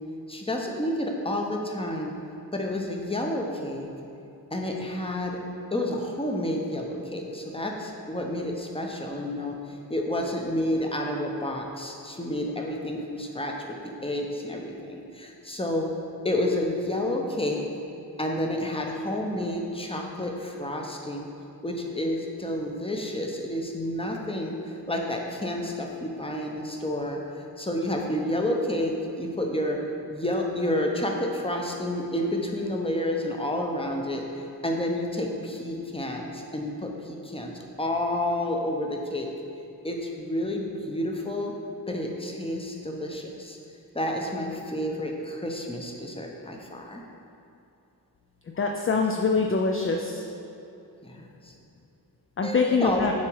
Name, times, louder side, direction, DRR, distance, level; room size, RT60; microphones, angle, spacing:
voice 1, 0.3-2.1 2.5-3.9 4.5-5.4 5.7-13.5 13.8-15.9 16.2-17.7 18.2-21.3 21.6-29.8 30.1-39.3 39.8-41.5 41.9-43.6 43.9-47.0 51.0-51.5 52.4-53.1, left 1 dB, 15° left, 1 dB, 0.8 m, -30 dB
voice 2, 48.6-50.2 52.4-53.1, left 4 dB, 35° left, 2 dB, 0.4 m, -24 dB
7.3 x 3.0 x 4.6 m, 2.8 s
cardioid pair, 40°, 39 cm